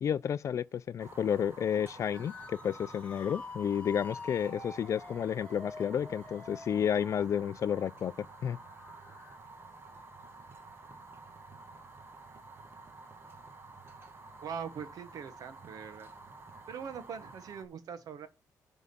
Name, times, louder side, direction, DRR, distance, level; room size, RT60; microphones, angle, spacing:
voice 1, 0.0-8.6, left 8 dB, 50° left, 0.3 m, -31 dB
Fire, 1.0-17.7, right 3 dB, 35° right, 1.3 m, -51 dB
sound 1, 2.1-9.4, left 3 dB, 20° left, 1.7 m, -48 dB
voice 2, 14.4-16.1 16.7-18.3, right 7 dB, 70° right, 1.2 m, -42 dB
9.5 x 3.7 x 6.8 m
cardioid pair, 110°, 6 cm